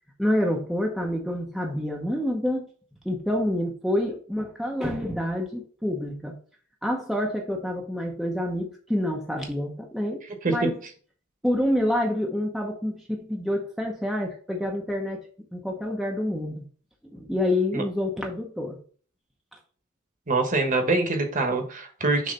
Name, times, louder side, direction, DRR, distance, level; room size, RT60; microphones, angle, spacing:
voice 1, 0.2-2.7 3.0-6.4 6.8-10.7 11.4-15.3 15.5-16.6 17.0-18.8, left 1 dB, ahead, -1 dB, 0.8 m, -27 dB
voice 2, 20.3-22.3, right 3 dB, 35° right, 5 dB, 1.2 m, -24 dB
6.5 x 3.2 x 5.5 m, 0.43 s
head